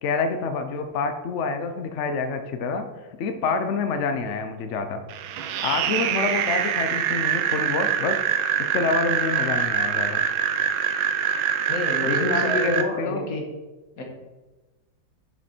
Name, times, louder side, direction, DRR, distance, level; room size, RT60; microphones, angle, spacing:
voice 1, 0.0-2.9 3.2-5.0 5.6-8.2 8.6-10.2 12.1-13.2, left 4 dB, 80° left, 7 dB, 0.6 m, -27 dB
sound 1, 5.1-12.8, right 9 dB, 85° right, 1.5 m, -24 dB
voice 2, 11.7-13.4 14.0-14.1, left 2 dB, 45° left, 1 dB, 1.8 m, -28 dB
7.9 x 6.6 x 4.4 m, 1.2 s
omnidirectional pair, 2.1 m